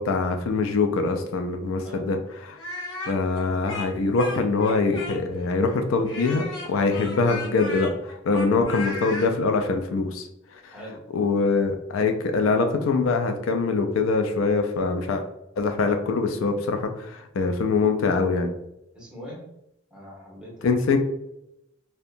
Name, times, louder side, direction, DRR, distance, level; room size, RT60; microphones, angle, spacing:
voice 1, 0.0-2.6 3.1-7.9 8.3-10.2 11.1-15.2 15.6-18.5 20.6-21.0, left 4 dB, 90° left, 6 dB, 0.4 m, -23 dB
voice 2, 1.8-2.2 10.7-11.0 18.9-19.5 19.9-20.9, equal, 5° right, -6 dB, 1.0 m, -41 dB
Speech, 2.5-5.4 6.1-9.3, left 2 dB, 70° left, 0.7 m, -35 dB
2.7 x 2.2 x 2.5 m, 0.84 s
head